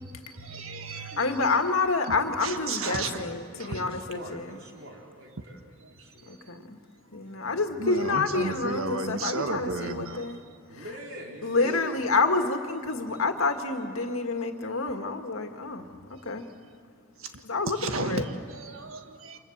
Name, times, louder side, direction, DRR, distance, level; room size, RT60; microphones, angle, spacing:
voice 1, 0.3-1.5 2.4-3.2 3.7-3.8 6.6-6.7 7.8-10.2 17.2-17.4 17.7-19.4, right 3 dB, 90° right, 7 dB, 1.6 m, -33 dB
voice 2, 0.9-4.5 6.3-6.8 7.1-10.4 10.8-10.9 11.4-16.5 17.4-18.2, left 3 dB, 85° left, 6 dB, 2.0 m, -28 dB
voice 3, 3.0-5.6 5.9-6.4 7.2-7.4 10.7-12.0 19.3-19.4, right 1 dB, 60° right, 0 dB, 4.3 m, -43 dB
29.0 x 26.0 x 7.4 m, 2.2 s
head